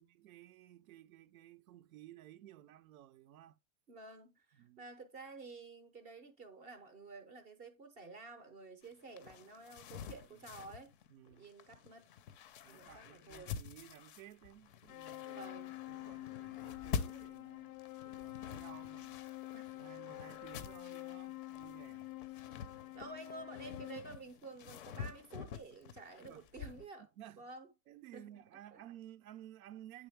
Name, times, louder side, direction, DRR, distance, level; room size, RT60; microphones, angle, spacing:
voice 1, 0.0-3.6 4.6-4.9 10.3-10.5 11.1-11.5 12.6-15.5 15.9-19.2 19.7-22.1 22.9-23.1 26.2-26.5 27.0-27.5 27.9-30.1, right 12 dB, 85° right, 0.6 m, -56 dB
voice 2, 3.9-10.9 11.3-12.1 12.7-13.5 15.3-15.8 19.5-19.7 22.5-22.6 22.9-27.0 27.4-27.7 28.1-28.3 28.7-28.8, right 3 dB, 20° right, 0.4 m, -51 dB
sound 1, 8.8-26.9, left 7 dB, 40° left, 0.5 m, -47 dB
sound 2, 14.9-24.0, left 18 dB, 90° left, 0.6 m, -47 dB
8.5 x 3.6 x 3.3 m
supercardioid pair, 165°, 42 cm